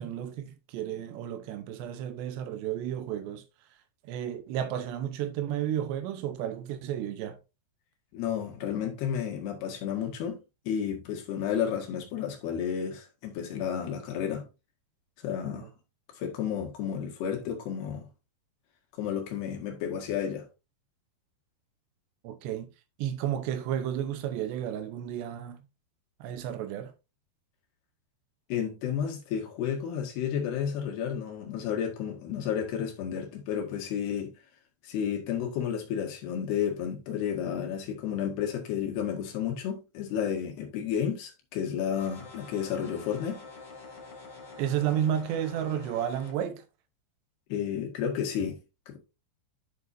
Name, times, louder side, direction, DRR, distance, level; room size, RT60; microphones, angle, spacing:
voice 1, 0.0-3.4 4.1-7.4 15.6-15.7 22.2-22.7 23.0-25.6 26.2-26.9 44.6-46.6, right 10 dB, 80° right, 3.1 m, -32 dB
voice 2, 8.1-10.4 10.7-14.5 15.2-15.7 16.2-18.1 19.0-20.5 28.5-34.3 34.8-43.4 47.5-48.6 48.9-49.0, left 8 dB, 70° left, 3.7 m, -32 dB
sound 1, 41.9-46.3, left 4 dB, 55° left, 1.2 m, -47 dB
9.9 x 6.7 x 2.7 m
omnidirectional pair, 5.0 m